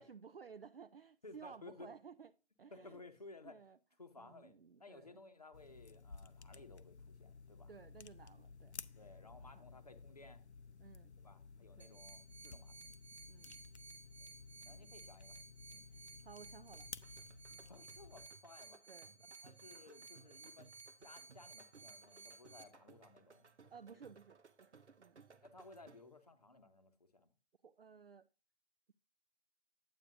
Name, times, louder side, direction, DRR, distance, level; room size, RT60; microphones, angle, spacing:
voice 1, 0.0-2.3 2.6-3.0 3.4-3.8 4.2-5.2 7.7-8.7 9.6-9.7 10.8-11.2 11.8-12.0 13.3-13.6 14.6-14.9 16.2-16.9 17.5-17.7 18.9-19.1 23.7-25.2 27.6-28.3, right 6 dB, 60° right, 0.4 m, -56 dB
voice 2, 1.2-1.9 2.7-3.6 4.0-7.7 8.9-10.4 11.2-12.8 14.2-14.3 14.6-15.4 15.7-15.8 17.7-18.8 19.2-20.7 21.0-23.7 25.4-27.3, left 3 dB, 35° left, 0.9 m, -58 dB
sound 1, 5.5-18.3, left 5 dB, 80° left, 0.7 m, -55 dB
sound 2, 11.8-22.6, right 4 dB, 30° right, 0.9 m, -57 dB
sound 3, 16.7-26.2, right 5 dB, 85° right, 0.8 m, -64 dB
9.2 x 8.7 x 2.5 m
figure-of-eight pair, 165°, 33 cm